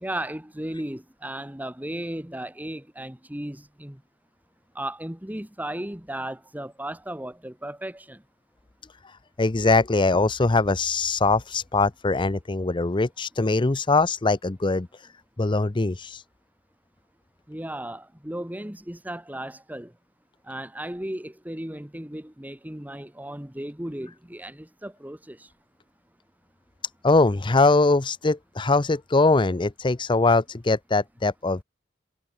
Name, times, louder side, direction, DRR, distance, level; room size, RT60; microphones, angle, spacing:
voice 1, 0.0-4.0 4.7-8.2 17.5-19.9 20.5-25.5, right 1 dB, 10° right, 1.5 m, -35 dB
voice 2, 9.4-14.9 15.4-16.2 27.0-31.6, left 3 dB, 25° left, 0.6 m, -22 dB
head